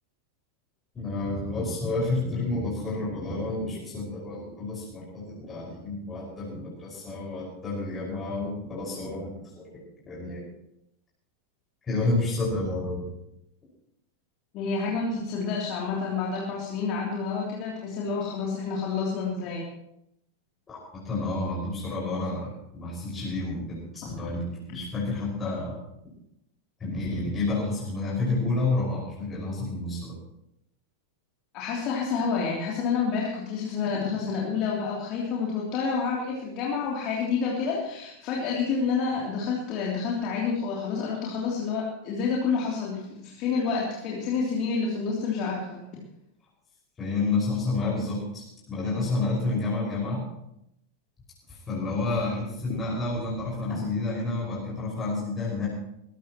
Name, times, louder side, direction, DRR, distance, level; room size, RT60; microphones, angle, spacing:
voice 1, 0.9-9.6 10.1-10.5 11.9-13.1 20.7-20.8 21.0-25.8 26.8-30.1 47.0-50.2 51.7-55.7, left 2 dB, 20° left, -5 dB, 5.8 m, -30 dB
voice 2, 14.5-19.7 25.4-25.5 31.5-45.8, left 5 dB, 40° left, -4 dB, 3.3 m, -29 dB
20.5 x 16.5 x 3.1 m, 0.81 s
figure-of-eight pair, 90°, 0 cm